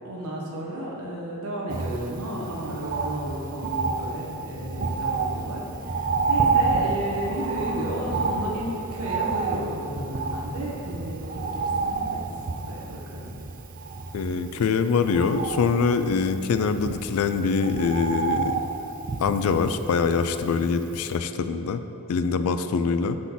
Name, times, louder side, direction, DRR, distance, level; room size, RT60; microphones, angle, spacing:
voice 1, 0.0-12.2 12.7-13.3, right 1 dB, 70° right, -4 dB, 1.1 m, -33 dB
Bird, 1.7-20.8 21.1-21.2, right 4 dB, 40° right, 0.4 m, -29 dB
voice 2, 14.1-18.6 19.2-21.8 22.1-23.2, left 5 dB, 70° left, 10 dB, 0.3 m, -24 dB
6.0 x 3.8 x 5.8 m, 3.0 s
head